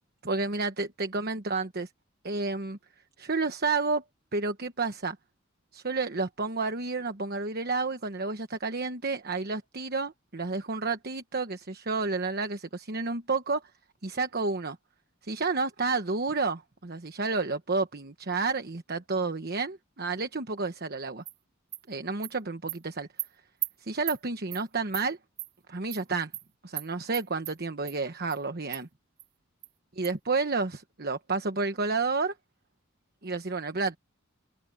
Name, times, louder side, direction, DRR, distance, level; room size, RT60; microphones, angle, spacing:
voice 1, 0.2-1.9 2.2-2.8 3.2-4.0 4.3-5.2 5.7-13.6 14.0-14.8 15.2-21.2 21.9-23.1 23.8-25.2 25.7-26.3 26.6-28.9 29.9-32.3 33.2-34.0, right 3 dB, 50° right, 1.2 m, -30 dB
Animal, 21.3-21.4 21.7-21.8 22.2-22.3 22.7-22.8 23.2-23.3 23.6-23.7 24.1-24.2 24.5-24.6 24.9-25.1 25.4-25.5 25.9-26.0 26.3-26.4 26.8-26.9 27.1-27.5 27.9-28.0 28.3-28.4 28.7-28.8 29.2-29.3 29.6-29.7 30.0-30.1, right 16 dB, 70° right, 2.8 m, -35 dB
open air
head